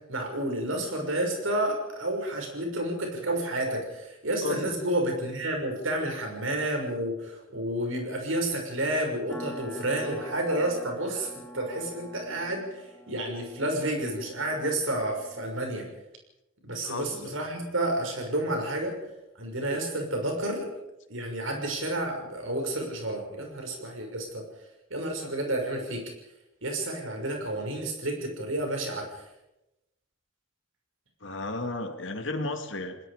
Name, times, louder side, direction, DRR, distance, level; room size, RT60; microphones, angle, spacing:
voice 1, 0.1-15.9 16.6-19.0 19.4-20.7 21.1-24.4 24.9-26.0 26.6-29.2, right 1 dB, 80° right, 2 dB, 6.2 m, -30 dB
voice 2, 4.4-4.7 16.8-17.4 31.2-33.0, left 2 dB, 65° left, 6 dB, 2.3 m, -33 dB
sound 1, 9.3-15.5, equal, 10° left, 2.5 m, -45 dB
29.5 x 20.0 x 5.1 m, 0.93 s
head